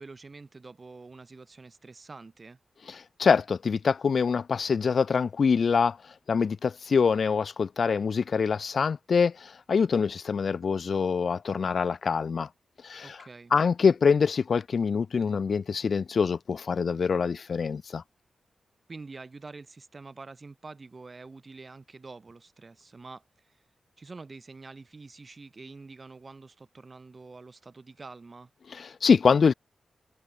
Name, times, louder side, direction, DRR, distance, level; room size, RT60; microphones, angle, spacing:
voice 1, 0.0-2.6 13.0-13.5 18.9-23.6 24.0-28.5, right 3 dB, 35° right, 7.7 m, -46 dB
voice 2, 3.2-6.0 6.3-12.5 12.8-13.2 13.5-18.0 28.7-29.5, left 5 dB, 60° left, 1.0 m, -25 dB
wide cardioid pair, 105°, 0 cm